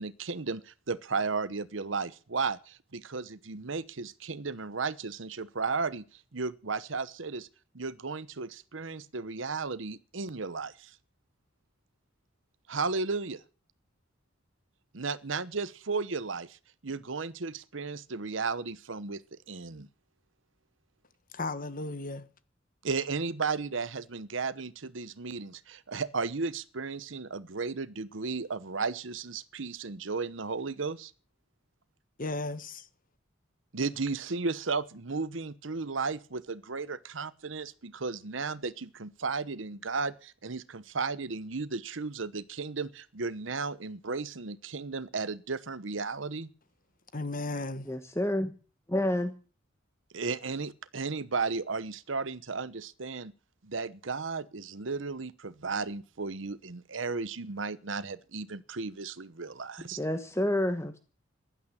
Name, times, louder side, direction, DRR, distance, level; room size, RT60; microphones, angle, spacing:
voice 1, 0.0-6.0 6.3-7.5 7.7-11.0 12.7-13.4 14.9-16.6 16.8-19.9 22.8-31.1 33.7-46.5 50.1-53.3 53.6-60.0, right 4 dB, 75° right, 1.0 m, -34 dB
voice 2, 21.3-22.3 32.2-32.9 47.1-47.9, left 2 dB, 45° left, 1.5 m, -35 dB
voice 3, 47.9-48.5 48.9-49.3 60.0-61.0, left 1 dB, 15° left, 1.2 m, -29 dB
16.0 x 11.5 x 7.2 m
head